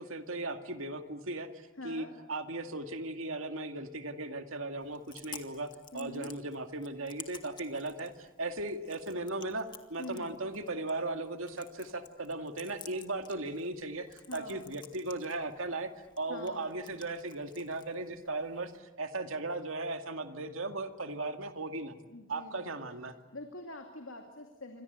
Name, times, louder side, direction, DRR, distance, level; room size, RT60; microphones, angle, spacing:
voice 1, 0.0-15.9 16.2-22.0 22.3-23.1, right 2 dB, 70° right, 6 dB, 2.2 m, -37 dB
voice 2, 1.8-2.1 5.9-6.3 10.0-10.3 14.3-14.7 16.3-16.6 22.1-22.7 23.3-24.8, left 1 dB, 70° left, 4 dB, 2.5 m, -45 dB
Chewing mastication, 4.8-18.8, left 6 dB, 20° left, 2.0 m, -54 dB
28.0 x 26.0 x 8.1 m, 1.1 s
head